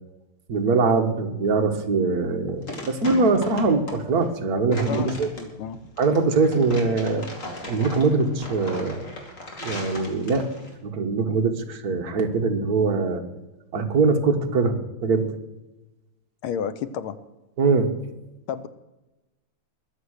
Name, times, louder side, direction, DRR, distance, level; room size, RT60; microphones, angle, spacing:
voice 1, 0.5-5.3 6.0-7.3 7.7-9.1 9.6-10.5 10.8-13.2 13.7-14.8 15.0-15.3 17.6-17.9, right 4 dB, 50° right, 4 dB, 1.8 m, -22 dB
sound 1, 2.2-10.7, left 1 dB, 35° left, 2.8 m, -37 dB
voice 2, 4.9-5.8 16.4-17.2 18.5-18.7, left 8 dB, 80° left, 13 dB, 1.7 m, -31 dB
21.5 x 7.2 x 6.5 m, 1.0 s
omnidirectional pair, 2.4 m